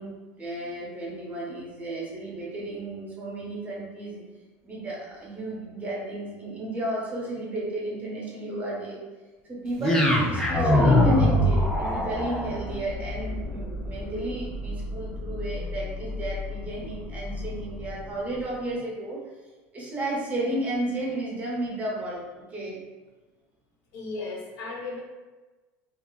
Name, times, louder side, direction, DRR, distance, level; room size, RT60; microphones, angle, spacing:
voice 1, 0.0-4.2 4.6-9.0 9.5-19.2 19.7-22.2 22.5-22.8, right 2 dB, 25° right, -5 dB, 1.0 m, -33 dB
sound 1, 9.8-18.0, left 1 dB, 10° left, 0.5 m, -25 dB
voice 2, 23.9-25.0, left 3 dB, 55° left, -1 dB, 0.6 m, -35 dB
2.9 x 2.5 x 2.2 m, 1.2 s
supercardioid pair, 115°, 6 cm